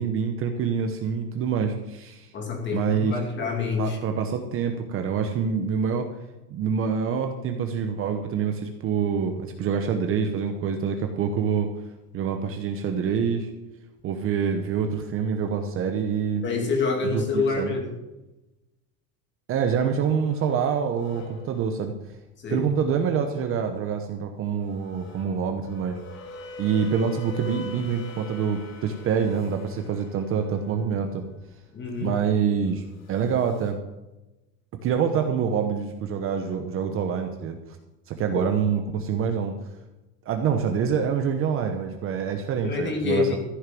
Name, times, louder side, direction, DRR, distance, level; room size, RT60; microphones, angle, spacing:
voice 1, 0.0-2.3 2.7-3.2 3.8-6.1 6.5-11.7 12.1-13.5 14.0-16.4 17.0-17.7 19.5-21.9 22.5-26.0 26.6-31.3 32.0-32.8 33.1-33.8 34.8-37.6 38.1-39.6 40.2-43.4, right 6 dB, 30° right, 5 dB, 1.0 m, -26 dB
voice 2, 2.3-4.0 16.4-18.0 22.4-22.7 31.7-32.1 38.3-38.5 42.6-43.4, left 4 dB, 25° left, 3 dB, 2.6 m, -27 dB
sound 1, 20.2-20.6 20.9-21.9 22.7-22.8 24.6-30.5 32.4-33.7, equal, 70° left, 3.2 m, -43 dB
14.5 x 6.4 x 7.6 m, 1.0 s
supercardioid pair, 160°, 43 cm